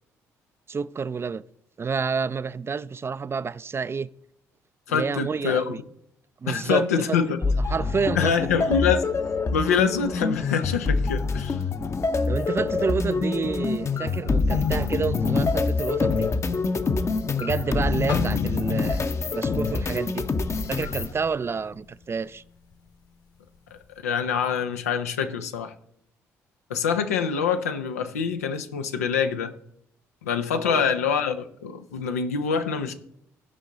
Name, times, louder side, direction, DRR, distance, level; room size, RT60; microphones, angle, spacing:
voice 1, 0.7-1.4 1.8-4.1 4.9-5.8 6.4-8.3 12.3-16.3 17.4-19.0 19.3-20.3 20.7-22.4 30.6-30.8, right 5 dB, 30° right, 0.4 m, -29 dB
voice 2, 4.9-5.7 6.5-7.4 8.2-9.1 9.5-11.6 23.7-25.7 26.7-29.5 30.2-32.9, left 6 dB, 90° left, 0.6 m, -25 dB
sound 1, 7.4-21.1, left 4 dB, 35° left, 0.8 m, -26 dB
sound 2, 18.1-22.1 22.5-22.7 23.4-23.7, left 5 dB, 55° left, 1.4 m, -35 dB
16.0 x 5.4 x 3.8 m
hypercardioid pair, 50°, 8 cm